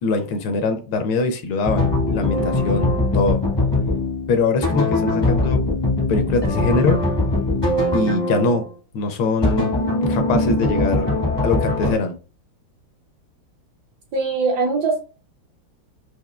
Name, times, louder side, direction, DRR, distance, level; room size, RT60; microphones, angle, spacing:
voice 1, 0.0-3.4 4.3-5.6 6.1-7.0 7.9-8.7 8.9-9.7 10.1-11.1 11.4-12.1, left 3 dB, 75° left, 1.4 m, -22 dB
sound 1, 1.6-8.6 9.4-11.9, left 2 dB, 30° left, 0.5 m, -21 dB
voice 2, 14.1-15.0, right 4 dB, 75° right, 0.9 m, -21 dB
4.8 x 2.6 x 2.2 m
omnidirectional pair, 2.4 m